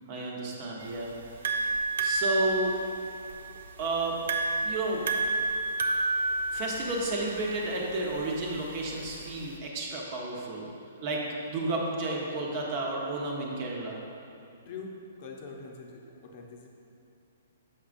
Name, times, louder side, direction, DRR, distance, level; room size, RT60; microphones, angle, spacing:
voice 1, 0.1-1.1 2.0-2.7 3.8-4.2 4.6-5.0 6.5-10.7 11.0-11.2 11.5-14.0, right 2 dB, 40° right, -2 dB, 1.0 m, -31 dB
sound 1, 0.8-9.6, right 2 dB, 70° right, 0.5 m, -31 dB
voice 2, 14.6-16.7, left 4 dB, 45° left, 0 dB, 0.8 m, -43 dB
7.0 x 5.9 x 2.6 m, 2.6 s
hypercardioid pair, 145°, 0 cm